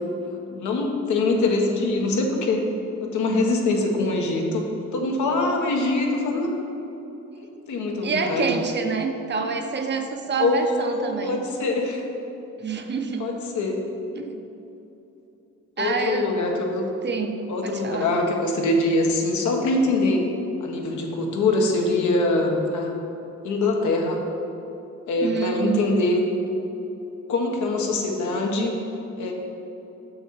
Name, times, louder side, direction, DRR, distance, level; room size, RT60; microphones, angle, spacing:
voice 1, 0.5-2.6 3.0-4.7 4.9-6.5 7.7-8.5 10.4-12.1 13.2-13.8 15.8-16.9 17.5-20.2 20.6-22.9 23.4-24.2 25.1-26.2 27.3-28.7 29.2-29.3, left 2 dB, 75° left, 1 dB, 1.2 m, -23 dB
voice 2, 8.0-11.4 12.6-13.3 14.2-14.4 15.8-16.3 17.0-18.1 25.2-25.8, right 5 dB, 35° right, 5 dB, 0.7 m, -27 dB
6.4 x 6.2 x 4.8 m, 2.9 s
cardioid pair, 90°, 30 cm